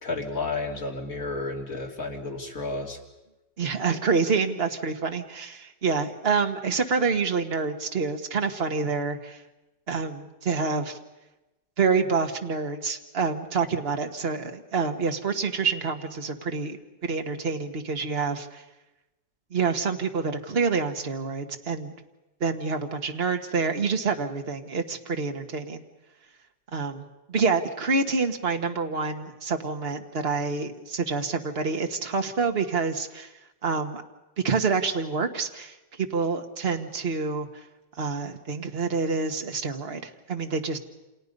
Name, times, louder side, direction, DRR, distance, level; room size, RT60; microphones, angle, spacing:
voice 1, 0.0-3.0, left 3 dB, 50° left, 1 dB, 3.3 m, -32 dB
voice 2, 3.6-9.4 9.9-11.0 11.8-18.6 19.5-21.9 22.4-25.8 26.7-33.3 33.6-34.0 34.4-37.6 38.0-40.8, right 4 dB, 35° right, 5 dB, 1.6 m, -27 dB
29.0 x 27.0 x 5.4 m, 1.0 s
omnidirectional pair, 1.9 m